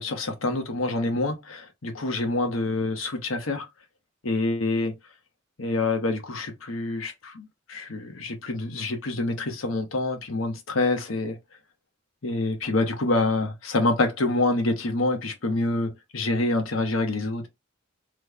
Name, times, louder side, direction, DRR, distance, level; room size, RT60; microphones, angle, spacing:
voice 1, 0.0-3.6 4.2-4.9 5.6-11.4 12.2-17.5, left 2 dB, 70° left, 0.9 m, -26 dB
3.1 x 2.1 x 3.5 m
head